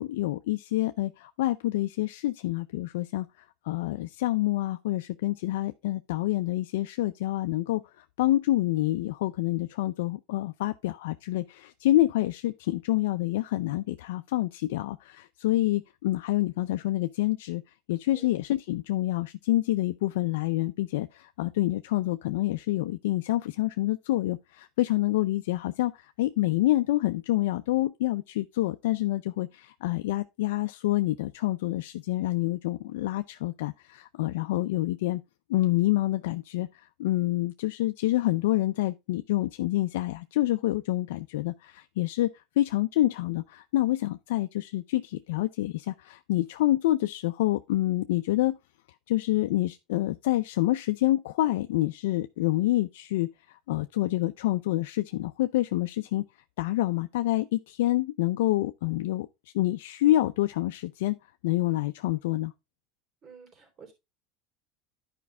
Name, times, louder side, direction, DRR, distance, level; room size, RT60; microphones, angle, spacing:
voice 1, 0.0-3.3 3.6-7.8 8.2-17.6 17.9-35.2 35.5-48.6 49.1-53.3 53.7-56.3 56.6-59.3 59.5-61.2 61.4-62.5, left 16 dB, 90° left, 0.4 m, -27 dB
voice 2, 63.2-63.9, right 5 dB, 40° right, 3.8 m, -50 dB
11.0 x 5.2 x 3.3 m
supercardioid pair, 130°, 0 cm